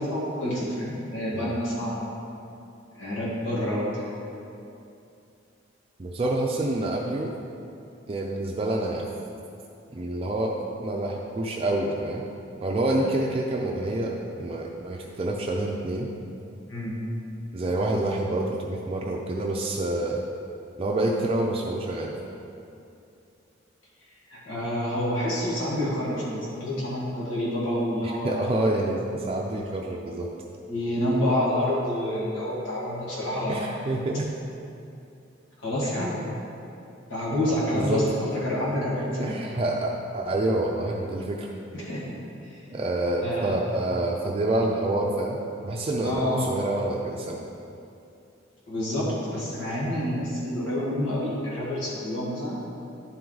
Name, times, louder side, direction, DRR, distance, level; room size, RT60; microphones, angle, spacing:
voice 1, 0.0-2.1 2.9-4.1 16.7-17.0 24.3-28.4 30.7-33.7 35.6-36.1 37.1-39.4 41.7-42.2 42.4-42.6 43.2-43.5 46.0-46.4 48.7-52.5, left 1 dB, 85° left, -6 dB, 1.7 m, -28 dB
voice 2, 6.0-7.3 8.1-9.1 9.9-12.2 12.6-16.1 17.5-20.2 20.8-22.1 28.2-30.3 33.2-34.3 36.0-36.4 37.3-37.4 37.7-38.0 39.2-41.5 42.7-45.4 45.6-47.4, right 2 dB, 30° right, -1 dB, 0.4 m, -27 dB
10.5 x 4.6 x 3.9 m, 2.7 s
head